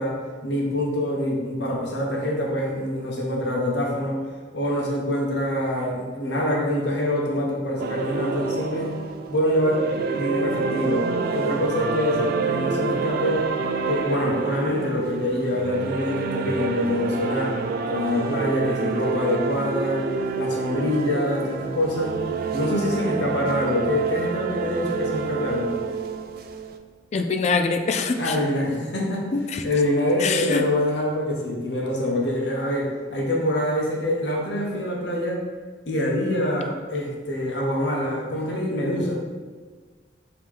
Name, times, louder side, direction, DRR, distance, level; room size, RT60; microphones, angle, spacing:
voice 1, 0.0-4.2 4.5-8.9 9.3-9.8 10.1-13.5 13.9-17.6 17.9-20.1 20.4-22.2 22.5-25.8 28.2-29.3 29.6-35.4 35.9-39.1, left 1 dB, 65° left, -1 dB, 0.9 m, -25 dB
sound 1, 7.8-26.8, right 4 dB, 55° right, 0.3 m, -28 dB
voice 2, 27.1-28.4 29.3-29.6 30.2-30.6, left 4 dB, 40° left, 6 dB, 0.3 m, -24 dB
5.2 x 2.9 x 3.3 m, 1.5 s
head